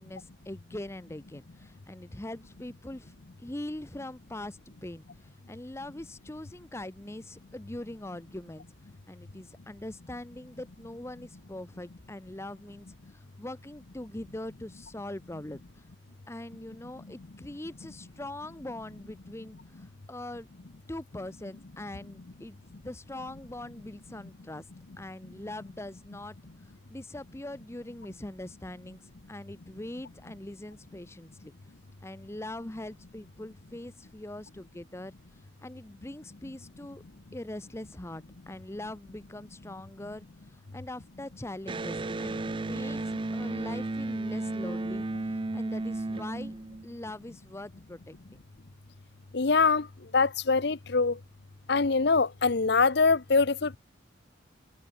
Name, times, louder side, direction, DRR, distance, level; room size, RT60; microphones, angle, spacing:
voice 1, 0.0-15.9 16.3-20.5 20.9-24.7 25.0-26.4 26.9-31.5 32.0-37.0 37.3-46.5 46.8-48.1, left 1 dB, 15° left, 0.8 m, -42 dB
Electric guitar, 41.6-47.1, right 2 dB, 25° right, 0.5 m, -33 dB
voice 2, 49.3-49.9 50.1-51.1 51.7-53.8, left 4 dB, 60° left, 0.8 m, -24 dB
head